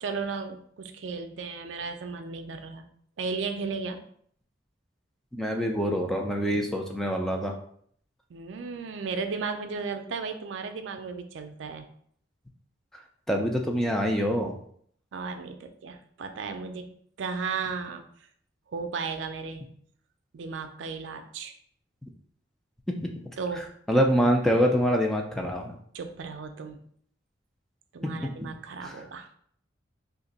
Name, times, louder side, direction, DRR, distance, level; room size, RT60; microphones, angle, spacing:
voice 1, 0.0-2.8 3.2-4.0 8.3-11.8 15.1-16.9 17.2-18.0 18.7-19.6 20.3-21.5 23.4-23.7 25.9-26.8 27.9-29.3, right 5 dB, 80° right, 7 dB, 0.4 m, -35 dB
voice 2, 5.4-7.5 13.3-14.6 22.9-23.1 23.9-25.8 28.2-28.3 28.8-28.9, equal, ahead, 2 dB, 0.3 m, -25 dB
2.8 x 2.5 x 4.0 m, 0.63 s
head